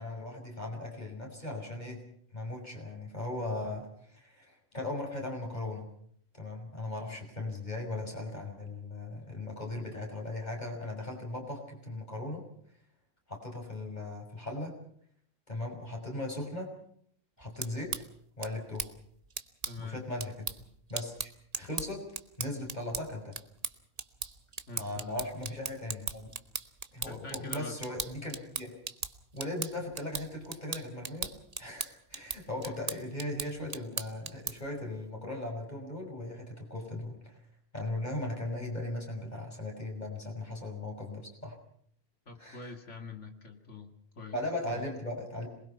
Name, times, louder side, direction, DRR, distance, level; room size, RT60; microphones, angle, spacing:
voice 1, 0.0-2.0 2.3-5.9 6.4-12.4 13.3-14.7 15.5-16.7 17.4-17.9 18.4-18.9 19.8-22.0 22.4-23.3 24.8-26.3 26.9-28.7 29.3-31.3 31.6-37.3 37.7-41.6 42.4-42.7 44.3-45.5, left 2 dB, 35° left, 0 dB, 6.2 m, -38 dB
sound 1, 17.4-34.8, right 4 dB, 35° right, 1.0 m, -40 dB
voice 2, 19.6-20.0 24.7-25.3 27.0-27.8 32.2-32.4 32.6-33.1 42.3-44.4 44.7-44.8, left 4 dB, 65° left, 4 dB, 2.8 m, -45 dB
26.5 x 20.5 x 5.8 m, 0.63 s
omnidirectional pair, 1.3 m